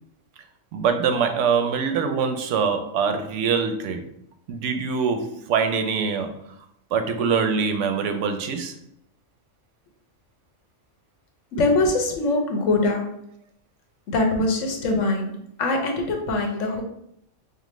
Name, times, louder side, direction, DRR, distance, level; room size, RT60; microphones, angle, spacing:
voice 1, 0.7-4.1 4.5-6.4 6.9-8.7, right 6 dB, 80° right, 7 dB, 0.9 m, -24 dB
voice 2, 11.5-13.2 14.1-16.8, left 2 dB, 85° left, 3 dB, 1.1 m, -23 dB
5.6 x 2.1 x 3.1 m, 0.74 s
omnidirectional pair, 1.3 m